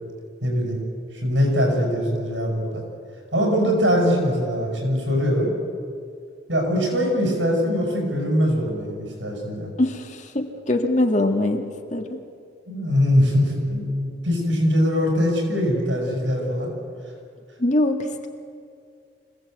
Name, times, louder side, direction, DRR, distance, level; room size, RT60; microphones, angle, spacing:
voice 1, 0.4-0.8 1.2-2.8 3.3-5.5 6.5-9.7 12.7-16.7, equal, 85° right, 1 dB, 7.0 m, -22 dB
voice 2, 9.8-12.2 17.6-18.3, left 1 dB, 40° left, 4 dB, 1.9 m, -23 dB
25.5 x 17.5 x 8.0 m, 2.3 s
head